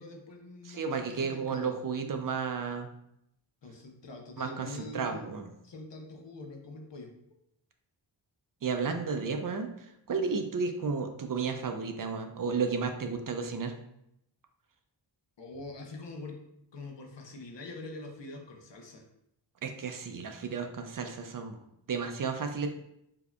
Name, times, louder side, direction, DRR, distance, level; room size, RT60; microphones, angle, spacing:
voice 1, 0.0-1.7 3.6-5.3 5.6-7.1 15.4-16.4 16.7-19.1, left 2 dB, 65° left, 2 dB, 0.8 m, -44 dB
voice 2, 0.6-2.9 4.4-5.5 8.6-13.8 19.6-21.6 21.9-22.7, right 5 dB, 45° right, 6 dB, 0.5 m, -33 dB
4.6 x 2.8 x 2.2 m, 0.79 s
cardioid pair, 60°, 46 cm